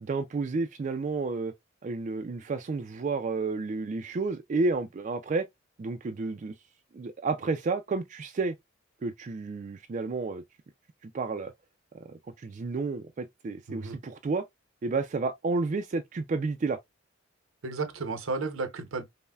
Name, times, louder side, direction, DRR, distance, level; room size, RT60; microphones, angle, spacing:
voice 1, 0.0-1.5 1.8-5.4 5.8-6.5 6.9-8.5 9.0-10.4 11.0-11.5 12.1-14.4 14.8-16.8, right 3 dB, 35° right, 0.3 m, -31 dB
voice 2, 17.6-19.0, right 3 dB, 80° right, 0.7 m, -33 dB
5.4 x 2.1 x 2.3 m
head